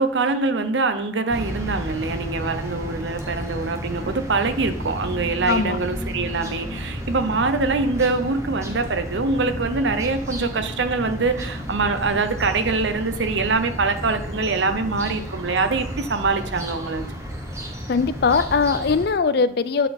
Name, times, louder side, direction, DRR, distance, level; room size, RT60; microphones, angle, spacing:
voice 1, 0.0-17.1, right 3 dB, 75° right, 9 dB, 0.7 m, -24 dB
sound 1, 1.3-19.1, equal, 15° right, 1.0 m, -32 dB
voice 2, 5.5-5.8 17.9-19.9, left 5 dB, 55° left, 14 dB, 0.4 m, -20 dB
9.0 x 4.0 x 4.3 m, 0.68 s
head